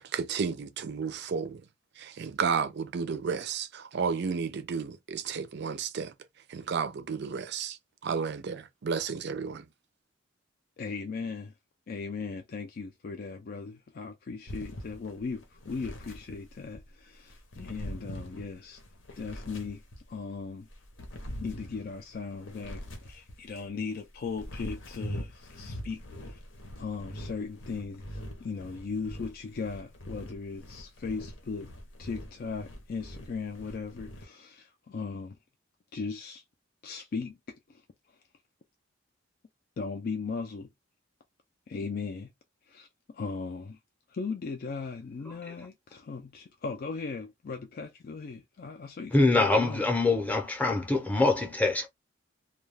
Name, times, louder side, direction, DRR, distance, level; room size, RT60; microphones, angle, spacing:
voice 1, 0.0-1.6 2.0-6.1 6.5-9.6, right 6 dB, 60° right, 0.4 m, -32 dB
voice 2, 10.8-11.5 11.9-18.8 19.2-19.8 20.1-20.7 21.4-26.4 26.8-31.7 32.0-35.4 35.9-36.4 36.8-37.8 39.8-40.7 41.7-42.3 42.7-42.9 43.1-43.8 44.1-49.9, left 4 dB, 50° left, 0.4 m, -38 dB
sound 1, 14.5-16.9 17.3-20.2 20.7-23.7 24.2-34.3, equal, 75° left, 0.8 m, -43 dB
voice 3, 49.1-51.9, left 3 dB, 10° left, 0.7 m, -24 dB
2.3 x 2.3 x 3.2 m
head